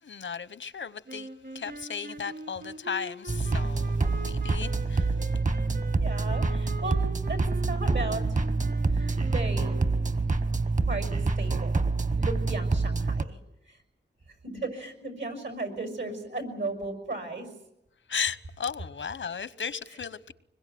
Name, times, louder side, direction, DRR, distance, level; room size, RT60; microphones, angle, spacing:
voice 1, 0.0-1.3 1.5-5.1 18.1-20.3, left 6 dB, 90° left, 0.9 m, -35 dB
sound 1, 1.1-10.2, right 1 dB, 65° right, 5.4 m, -43 dB
sound 2, 3.3-13.2, right 3 dB, 40° right, 1.1 m, -27 dB
voice 2, 5.9-8.4 8.9-9.8 10.8-11.8 12.2-13.4 13.7-13.8 14.4-17.5 19.9-20.0, right 2 dB, 80° right, 6.3 m, -36 dB
25.0 x 21.5 x 9.2 m
wide cardioid pair, 100°, 19 cm